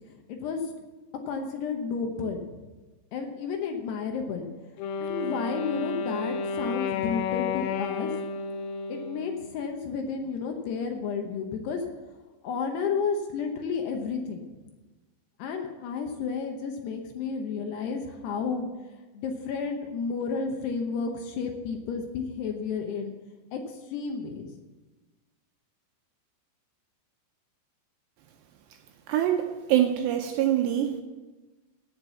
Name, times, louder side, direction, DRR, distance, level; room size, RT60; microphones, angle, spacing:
voice 1, 0.1-0.7 1.3-2.5 3.1-4.5 5.0-8.1 8.9-11.9 12.4-14.5 15.4-18.7 19.1-23.1 23.5-24.5, left 5 dB, 75° left, 4 dB, 2.7 m, -32 dB
Wind instrument woodwind instrument, 4.8-9.8, left 5 dB, 90° left, 2.1 m, -32 dB
voice 2, 29.1-31.0, right 11 dB, 80° right, 5 dB, 2.6 m, -24 dB
16.0 x 6.0 x 7.0 m, 1.2 s
omnidirectional pair, 5.5 m